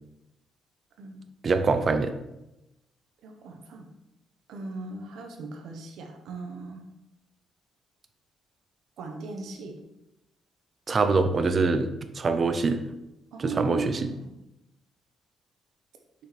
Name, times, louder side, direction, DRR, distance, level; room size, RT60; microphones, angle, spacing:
voice 1, 1.4-2.1 10.9-11.9 12.1-12.8 13.4-14.1, right 4 dB, 40° right, 9 dB, 0.7 m, -24 dB
voice 2, 3.2-3.9 4.5-6.8 9.0-9.8 13.3-14.3, right 3 dB, 80° right, 3 dB, 1.0 m, -37 dB
6.3 x 5.7 x 3.3 m, 0.91 s
cardioid pair, 90°, 0 cm